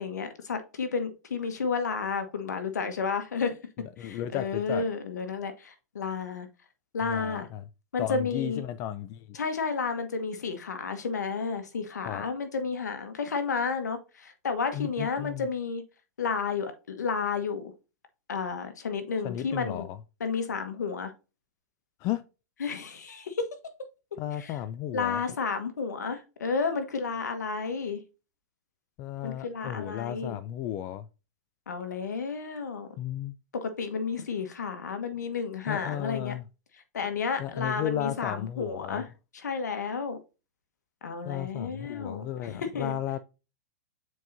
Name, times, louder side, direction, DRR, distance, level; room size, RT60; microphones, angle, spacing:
voice 1, 0.0-3.5 4.0-6.5 6.9-7.5 7.9-8.6 9.3-15.8 16.2-17.7 18.3-19.9 20.2-21.1 22.6-23.5 24.4-24.6 24.9-28.0 29.2-30.4 31.7-32.9 33.5-36.4 36.9-39.1 39.3-40.2 41.0-43.0, left 5 dB, 80° left, 1.4 m, -31 dB
voice 2, 4.0-4.8 7.1-7.6 8.0-9.2 12.0-12.2 14.7-15.4 19.2-20.0 22.0-22.2 24.2-25.2 29.0-31.0 33.0-33.3 35.7-36.4 37.4-39.0 41.2-43.2, left 11 dB, 35° left, 0.4 m, -34 dB
7.7 x 4.6 x 2.7 m
hypercardioid pair, 120°, 9 cm